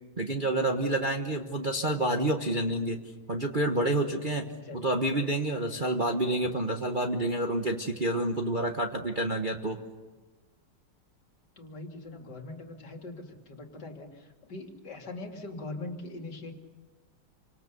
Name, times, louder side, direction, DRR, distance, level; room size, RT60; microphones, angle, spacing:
voice 1, 0.2-3.0 3.3-4.5 4.7-9.8, right 1 dB, 30° right, 3 dB, 1.1 m, -28 dB
voice 2, 4.5-5.0 11.6-16.5, left 2 dB, 55° left, 3 dB, 3.1 m, -42 dB
28.0 x 25.5 x 6.8 m, 1.3 s
omnidirectional pair, 2.3 m